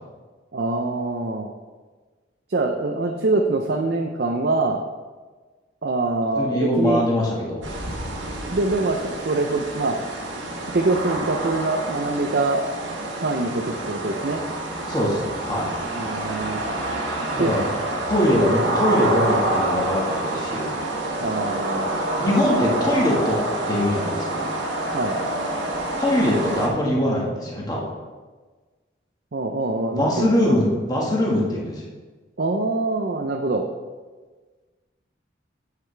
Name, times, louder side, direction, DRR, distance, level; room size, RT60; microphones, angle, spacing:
voice 1, 0.5-1.5 2.5-4.8 5.8-7.1 8.5-9.9 10.7-12.6 13.2-14.4 16.0-16.6 17.4-17.5 21.2-22.0 24.9-25.2 29.3-30.5 32.4-33.6, right 2 dB, 55° right, 2 dB, 0.6 m, -24 dB
voice 2, 6.3-7.6 14.9-15.7 17.3-17.6 18.1-20.7 22.2-23.4 23.7-24.5 26.0-27.8 29.9-31.8, left 1 dB, 20° left, -4 dB, 1.7 m, -22 dB
sound 1, 7.6-26.7, right 1 dB, 80° right, 1.6 m, -27 dB
9.2 x 7.5 x 3.4 m, 1.4 s
head